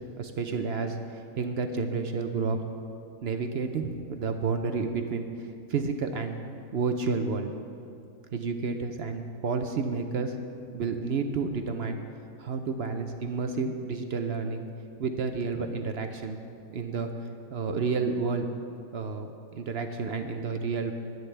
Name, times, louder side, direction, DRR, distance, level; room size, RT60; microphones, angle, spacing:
voice 1, 0.2-2.6 3.2-5.2 5.7-6.4 6.7-7.5 8.3-10.4 10.7-12.0 12.4-14.7 15.0-16.4 16.7-17.1 17.5-18.5 18.9-20.9, right 4 dB, 65° right, 6 dB, 0.6 m, -30 dB
21.5 x 9.3 x 3.3 m, 2.6 s
omnidirectional pair, 1.8 m